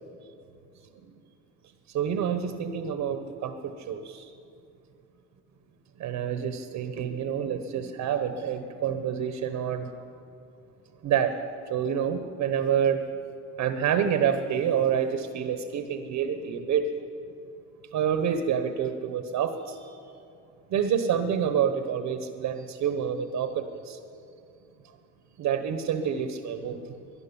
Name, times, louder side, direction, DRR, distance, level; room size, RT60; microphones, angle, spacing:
voice 1, 1.9-4.2 6.0-9.9 11.0-11.3 11.7-13.0 13.6-16.9 17.9-20.0 20.7-24.0 25.4-26.8, right 8 dB, 85° right, 8 dB, 1.0 m, -28 dB
12.5 x 11.0 x 9.9 m, 2.6 s
cardioid pair, 90°, 30 cm